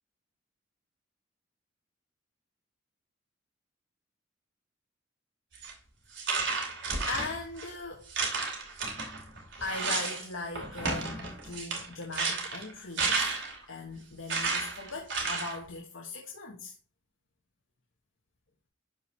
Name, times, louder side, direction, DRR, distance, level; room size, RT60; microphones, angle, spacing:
sound 1, 5.6-5.7 6.2-7.7 8.1-10.3 10.6-13.6 14.3-15.6, right 4 dB, 65° right, 2.7 m, -32 dB
voice 1, 7.1-8.0 9.6-13.3 13.7-16.7, left 3 dB, 80° left, 1.3 m, -39 dB
11.5 x 4.5 x 3.1 m
head